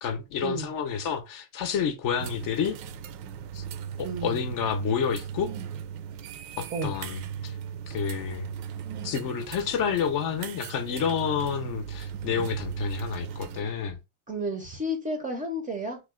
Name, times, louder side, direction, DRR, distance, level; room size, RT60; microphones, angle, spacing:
voice 1, 0.0-2.8 3.5-3.6 4.0-5.5 6.6-7.6 7.9-8.5 9.0-14.0, left 7 dB, 45° left, 0.6 m, -29 dB
sound 1, 2.2-13.6, right 8 dB, 90° right, 0.6 m, -38 dB
voice 2, 4.0-4.4 6.7-7.0 14.3-16.0, right 1 dB, 15° right, 0.5 m, -32 dB
3.0 x 2.1 x 3.5 m
supercardioid pair, 130°, 48 cm